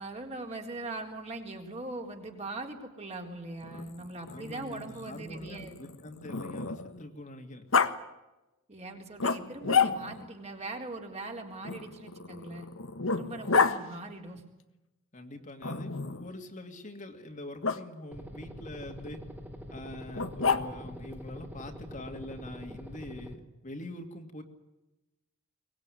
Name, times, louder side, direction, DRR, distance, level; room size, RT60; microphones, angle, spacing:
voice 1, 0.0-5.7 8.7-12.7 13.1-14.4, right 2 dB, 30° right, 1 dB, 4.0 m, -41 dB
Growling, 3.6-7.0 7.7-7.9 9.2-10.3 11.6-13.8 15.6-16.3 17.6-17.8 20.1-21.0, left 5 dB, 75° left, 1.4 m, -30 dB
voice 2, 4.3-7.6 15.1-19.3 19.7-24.4, left 1 dB, 40° left, 3 dB, 2.5 m, -44 dB
sound 1, 18.1-23.3, equal, 10° right, 2.7 m, -44 dB
23.5 x 20.0 x 9.8 m, 0.99 s
head